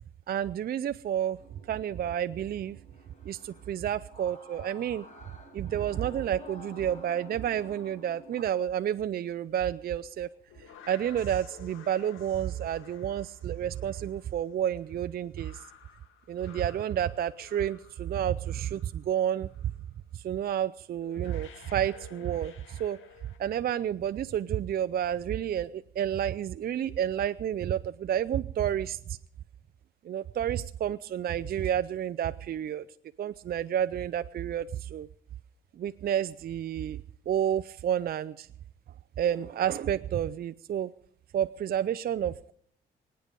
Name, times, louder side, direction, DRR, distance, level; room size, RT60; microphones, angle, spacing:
voice 1, 0.3-1.4 1.7-2.8 3.3-5.1 5.5-10.3 10.9-15.6 16.3-19.5 20.1-23.0 23.4-29.0 30.0-32.9 33.2-35.1 35.8-37.0 37.3-38.5 39.2-40.9 41.3-42.5, right 10 dB, 50° right, 11 dB, 0.5 m, -30 dB
Girls gong wild, 1.4-8.4, right 1 dB, 40° left, 4.9 m, -51 dB
sound 1, 10.2-19.1 19.4-19.8 20.6-20.7 21.0-23.4, left 7 dB, 85° left, 1.6 m, -53 dB
24.0 x 9.0 x 5.3 m, 0.62 s
cardioid pair, 90°, 20 cm